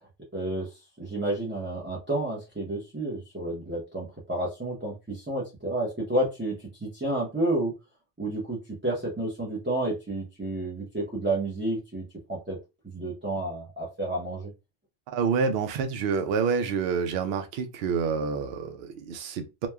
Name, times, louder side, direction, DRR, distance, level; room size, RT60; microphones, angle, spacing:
voice 1, 0.3-0.7 1.0-7.7 8.2-12.6 12.8-14.5, right 1 dB, 15° right, 0.5 m, -30 dB
voice 2, 15.1-19.7, right 5 dB, 65° right, 0.7 m, -28 dB
3.0 x 2.1 x 2.2 m
omnidirectional pair, 1.3 m